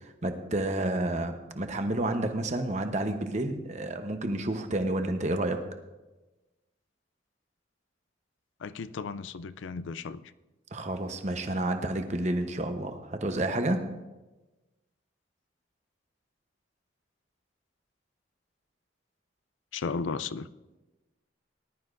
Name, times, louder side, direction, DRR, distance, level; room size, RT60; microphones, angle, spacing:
voice 1, 0.0-5.6 10.7-13.8, right 1 dB, 35° right, 0.9 m, -30 dB
voice 2, 8.6-10.2 19.7-20.5, left 5 dB, 75° left, 0.4 m, -34 dB
19.0 x 12.0 x 2.6 m
head